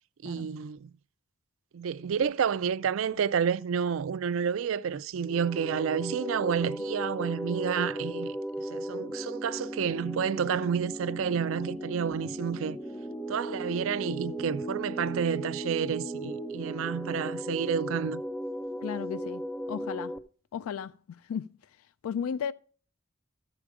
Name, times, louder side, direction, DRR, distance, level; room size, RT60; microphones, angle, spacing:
voice 1, 0.2-0.9 1.7-12.8 13.3-18.2, right 7 dB, 70° right, 0.4 m, -30 dB
sound 1, 5.2-20.2, equal, 5° left, 0.3 m, -36 dB
voice 2, 18.8-19.4 19.7-20.1 20.5-20.9 21.3-21.5 22.0-22.5, left 7 dB, 90° left, 0.3 m, -34 dB
14.0 x 4.9 x 4.9 m
head